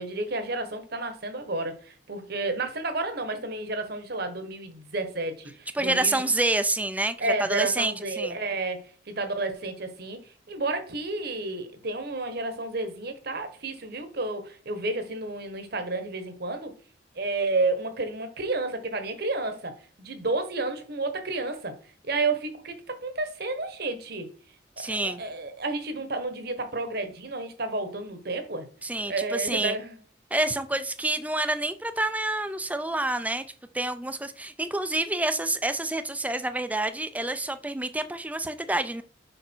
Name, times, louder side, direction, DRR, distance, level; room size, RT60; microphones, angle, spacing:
voice 1, 0.0-6.2 7.2-16.7 17.1-19.7 20.0-21.8 22.0-24.3 24.8-28.7 29.1-30.0, right 2 dB, 55° right, 1.3 m, -31 dB
voice 2, 5.7-8.4 24.8-25.2 28.8-29.8 30.3-33.4 33.7-39.0, right 2 dB, 10° right, 0.5 m, -28 dB
6.7 x 5.2 x 4.5 m
head